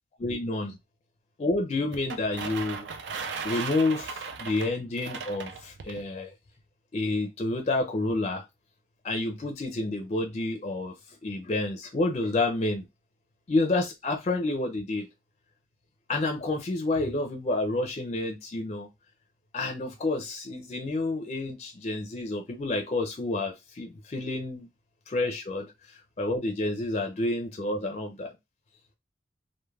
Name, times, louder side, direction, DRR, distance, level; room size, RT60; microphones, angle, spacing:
voice 1, 0.2-0.8 1.4-2.8 3.4-6.3 6.9-8.4 9.0-10.9 11.2-12.8 13.5-15.1 16.1-18.9 19.5-24.7 25.1-28.3, left 2 dB, 35° left, 0.4 m, -29 dB
sound 1, 1.9-6.0, right 5 dB, 75° right, 0.4 m, -37 dB
2.3 x 2.1 x 3.1 m
head